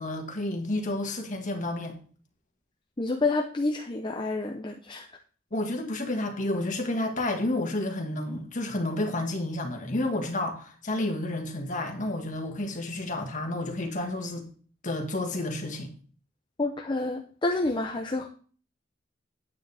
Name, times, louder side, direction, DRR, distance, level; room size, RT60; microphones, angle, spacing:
voice 1, 0.0-2.0 5.5-14.5 14.8-15.9, left 1 dB, 40° left, 1.8 m, -30 dB
voice 2, 3.0-5.1 16.6-18.3, left 2 dB, 25° left, 0.7 m, -28 dB
9.4 x 9.0 x 3.4 m
head